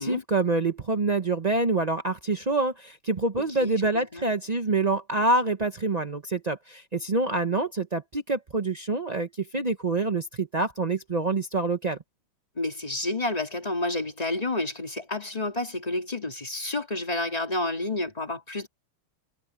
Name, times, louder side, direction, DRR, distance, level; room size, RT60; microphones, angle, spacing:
voice 1, 0.0-12.0, right 3 dB, 70° right, 0.3 m, -26 dB
voice 2, 3.4-4.3 12.6-18.7, left 2 dB, 20° left, 2.1 m, -30 dB
omnidirectional pair, 2.4 m